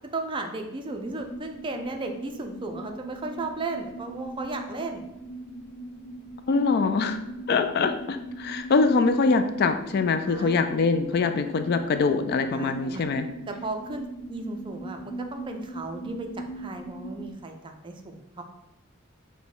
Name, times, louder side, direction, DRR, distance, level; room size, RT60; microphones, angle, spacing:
voice 1, 0.1-5.1 10.2-10.6 12.5-13.1 13.5-18.4, right 2 dB, 25° right, 4 dB, 0.4 m, -35 dB
sound 1, 0.9-17.3, right 1 dB, 85° left, 0.7 m, -40 dB
voice 2, 6.5-7.2 7.5-13.3, left 4 dB, 50° left, 8 dB, 0.3 m, -23 dB
5.1 x 2.2 x 4.7 m, 0.89 s
head